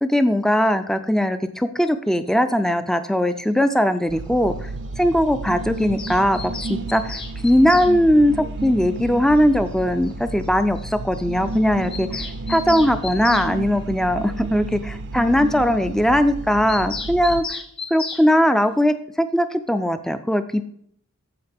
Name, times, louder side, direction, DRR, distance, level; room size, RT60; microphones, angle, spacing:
voice 1, 0.0-4.5 5.0-17.6 17.9-20.7, equal, ahead, 10 dB, 0.3 m, -20 dB
sound 1, 4.1-17.4, right 3 dB, 55° right, 0.5 m, -32 dB
Bird vocalization bird call bird song, 5.8-7.9 9.4-9.5 9.7-9.8 10.0-10.1 10.4-10.5 10.8-10.9 11.1-11.3 11.5-13.5 16.7-18.3, left 4 dB, 25° left, 0.9 m, -34 dB
13.5 x 4.9 x 3.4 m, 0.66 s
head